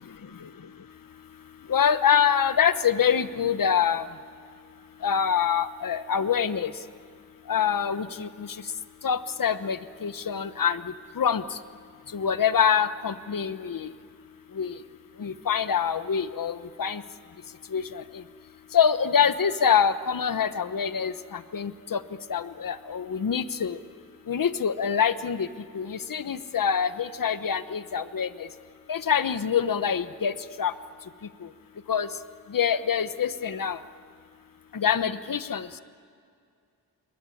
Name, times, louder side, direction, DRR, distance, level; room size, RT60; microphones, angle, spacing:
voice 1, 1.7-4.1 5.0-6.7 7.5-8.5 9.0-10.8 11.2-11.4 12.1-13.9 14.6-14.7 15.2-17.0 17.7-18.0 18.7-22.0 22.3-23.8 24.3-25.5 25.7-28.5 28.9-30.7 31.9-32.1 32.5-33.8 34.7-35.7, left 7 dB, 65° left, 13 dB, 1.1 m, -25 dB
27.5 x 22.5 x 9.9 m, 2.3 s
wide cardioid pair, 70°, 36 cm